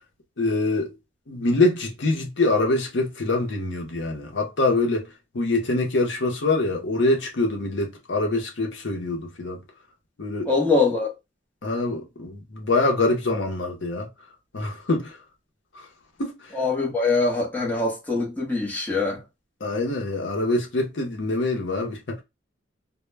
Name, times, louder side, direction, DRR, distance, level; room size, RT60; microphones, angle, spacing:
voice 1, 0.4-0.9 1.3-5.1 5.3-9.6 10.2-10.5 11.6-14.1 14.5-15.2 15.7-15.9 16.2-16.5 19.6-22.2, left 2 dB, 70° left, 0.7 m, -24 dB
voice 2, 10.5-11.1 16.5-19.2, left 3 dB, 10° left, 0.8 m, -23 dB
2.1 x 2.1 x 3.1 m
head